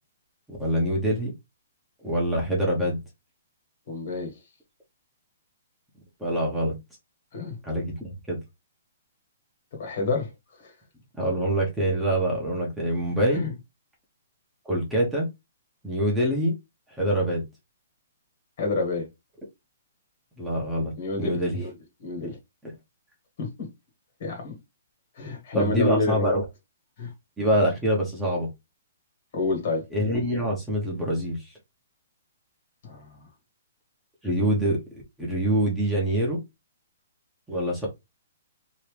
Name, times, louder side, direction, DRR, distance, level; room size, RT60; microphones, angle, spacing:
voice 1, 0.5-1.3 2.0-3.0 6.2-6.7 7.6-8.4 11.2-13.4 14.6-15.3 15.8-16.5 16.9-17.4 20.4-20.9 21.2-21.6 25.5-26.4 27.4-28.5 29.9-31.5 34.2-36.4 37.5-37.9, right 1 dB, 5° right, 1.0 m, -25 dB
voice 2, 3.9-4.3 7.3-7.6 9.7-10.3 10.6-10.7 13.3-13.5 18.6-19.1 21.0-21.7 22.0-22.4 23.4-23.7 24.2-24.5 25.2-26.4 27.0-27.1 29.3-29.8 32.8-33.3, left 3 dB, 50° left, 1.7 m, -29 dB
2.9 x 2.8 x 3.3 m
hypercardioid pair, 160°, 0 cm